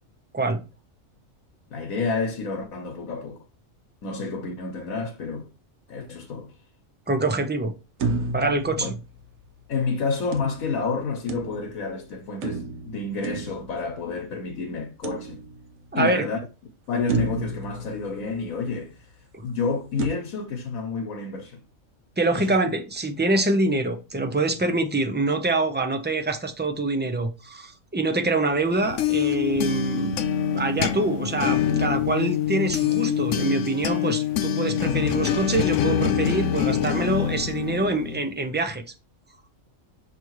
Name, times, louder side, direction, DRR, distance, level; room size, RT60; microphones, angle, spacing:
voice 1, 1.7-3.4 4.0-5.5 5.9-6.5 8.8-8.9 9.7-15.4 15.9-16.4 16.9-19.0 19.4-21.6 22.3-22.5, left 4 dB, 85° left, 1.5 m, -29 dB
voice 2, 7.1-7.7 8.3-8.9 15.9-16.3 19.3-19.4 22.2-30.2 30.5-38.8, right 2 dB, 15° right, 0.4 m, -25 dB
sound 1, 8.0-9.6 10.3-11.9 12.4-14.3 15.0-15.9 16.4-16.5 17.1-18.8 20.0-20.1, right 3 dB, 75° right, 1.3 m, -32 dB
sound 2, 28.6-38.3, left 9 dB, 70° left, 0.9 m, -25 dB
5.8 x 3.4 x 4.7 m
omnidirectional pair, 1.4 m